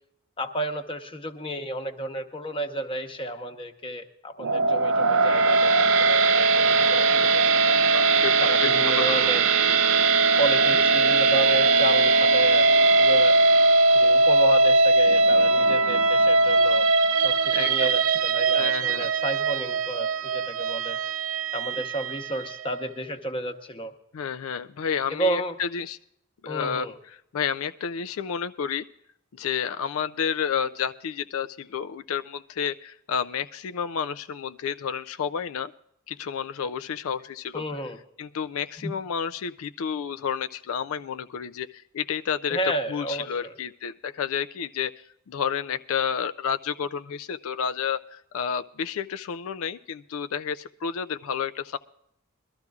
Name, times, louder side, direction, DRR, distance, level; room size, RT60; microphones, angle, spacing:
voice 1, 0.4-7.8 8.4-9.5 10.4-12.7 13.0-13.4 13.9-16.9 17.2-21.0 21.5-23.9 25.2-25.6 26.5-27.0 37.5-38.0 38.8-38.9 42.5-43.6, right 1 dB, 25° left, 6 dB, 1.0 m, -32 dB
sound 1, 4.4-22.6, right 3 dB, 65° right, 0.4 m, -20 dB
voice 2, 7.9-9.8 17.5-17.9 18.6-19.1 24.1-26.0 26.4-26.9 27.3-28.8 29.3-35.7 36.1-37.6 38.2-42.6 42.9-51.8, left 7 dB, 70° left, 10 dB, 0.4 m, -30 dB
22.5 x 13.0 x 2.4 m, 0.75 s
head